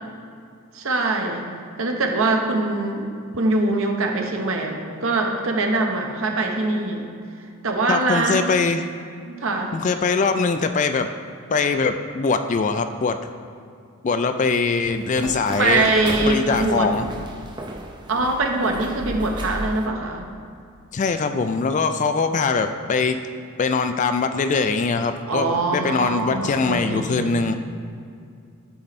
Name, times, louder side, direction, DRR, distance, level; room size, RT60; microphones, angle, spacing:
voice 1, 0.7-1.5 1.8-7.1 7.6-8.6 9.3-9.7 15.6-16.9 18.1-20.2 25.3-27.3, right 2 dB, 65° right, 2 dB, 1.0 m, -23 dB
voice 2, 7.9-8.8 9.7-11.1 11.5-13.3 14.0-15.9 16.2-17.1 20.9-23.2 23.6-27.6, left 4 dB, 35° left, 8 dB, 0.3 m, -22 dB
sound 1, 14.8-19.9, right 1 dB, 20° right, 0.5 m, -34 dB
12.0 x 4.4 x 4.2 m, 2.4 s
head